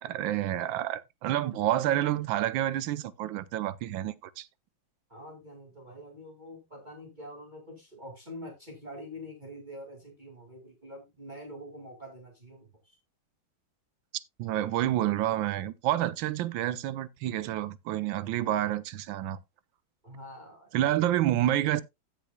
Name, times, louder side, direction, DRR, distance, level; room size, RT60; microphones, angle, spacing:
voice 1, 0.0-4.5 14.4-19.4 20.7-21.8, right 13 dB, 75° right, 1.3 m, -29 dB
voice 2, 5.1-13.0 20.0-20.7, equal, 20° right, 2.5 m, -45 dB
16.5 x 6.1 x 2.2 m
omnidirectional pair, 2.2 m